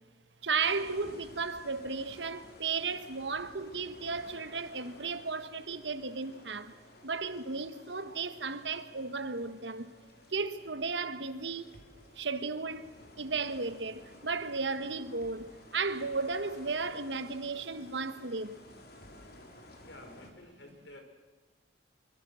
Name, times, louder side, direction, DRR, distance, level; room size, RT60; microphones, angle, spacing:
voice 1, 0.4-6.7 7.0-9.9 10.3-11.6 12.2-12.9 13.2-15.4 15.7-18.5, right 4 dB, 75° right, 1.4 m, -34 dB
sound 1, 0.6-20.3, left 1 dB, 60° left, 3.9 m, -54 dB
voice 2, 19.8-21.0, left 1 dB, 80° left, 5.6 m, -51 dB
26.0 x 24.0 x 6.4 m
head